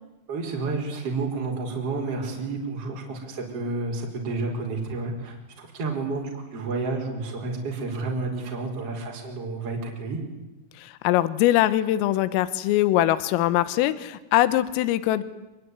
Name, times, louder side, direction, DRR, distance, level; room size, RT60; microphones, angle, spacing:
voice 1, 0.3-10.2, right 3 dB, 30° right, 0 dB, 5.1 m, -30 dB
voice 2, 10.8-15.2, left 14 dB, 85° left, 15 dB, 3.8 m, -22 dB
28.0 x 21.5 x 9.6 m, 1.0 s
omnidirectional pair, 5.9 m